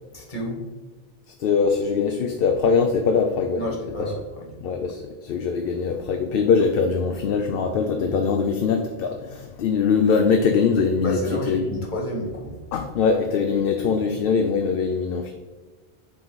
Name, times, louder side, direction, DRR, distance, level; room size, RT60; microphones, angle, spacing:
voice 1, 0.1-0.6 3.5-4.6 11.0-12.6, equal, 50° left, -2 dB, 1.6 m, -30 dB
voice 2, 1.4-3.6 4.6-11.2 11.5-11.7 12.7-15.3, left 5 dB, 70° left, 5 dB, 0.7 m, -22 dB
7.6 x 3.8 x 4.0 m, 1.3 s
omnidirectional pair, 1.0 m